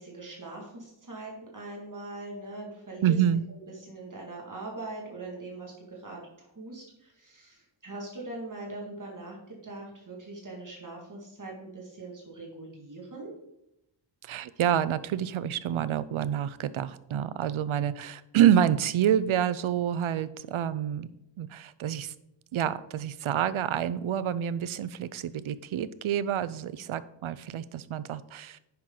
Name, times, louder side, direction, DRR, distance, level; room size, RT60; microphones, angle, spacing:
voice 1, 0.0-3.2 3.9-13.3, right 2 dB, 40° right, -2 dB, 2.1 m, -41 dB
voice 2, 3.0-3.4 14.2-21.1 21.4-22.1 22.5-28.6, right 10 dB, 85° right, 16 dB, 0.6 m, -27 dB
9.7 x 5.9 x 3.8 m, 0.85 s
wide cardioid pair, 110°, 47 cm